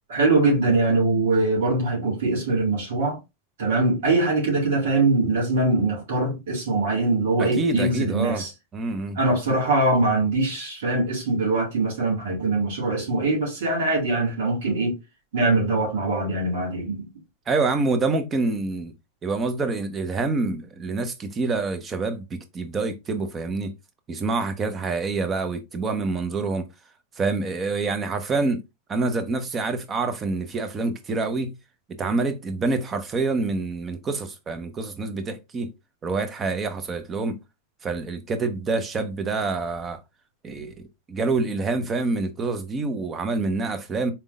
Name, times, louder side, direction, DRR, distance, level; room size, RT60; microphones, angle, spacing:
voice 1, 0.1-3.2 3.6-8.5 9.2-15.0 15.3-17.1, right 2 dB, 80° right, 2.0 m, -22 dB
voice 2, 7.4-8.5 8.7-9.2 17.5-18.9 19.2-23.7 24.1-26.7 27.2-28.6 28.9-31.6 32.0-35.7 36.0-37.4 37.8-40.0 40.4-40.7 41.1-44.1, right 3 dB, 25° right, 0.9 m, -26 dB
4.3 x 3.6 x 2.5 m
hypercardioid pair, 105°, 0 cm